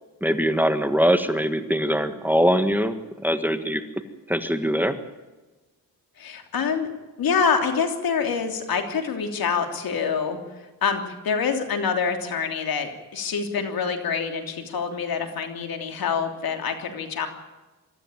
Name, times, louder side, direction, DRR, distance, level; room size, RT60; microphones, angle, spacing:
voice 1, 0.2-3.0 3.2-3.8 4.3-4.9, equal, 5° right, 8 dB, 1.6 m, -22 dB
voice 2, 6.2-6.9 7.2-10.4 10.8-17.3, left 6 dB, 75° left, 5 dB, 3.2 m, -26 dB
23.5 x 13.5 x 9.2 m, 1.2 s
cardioid pair, 80°, 36 cm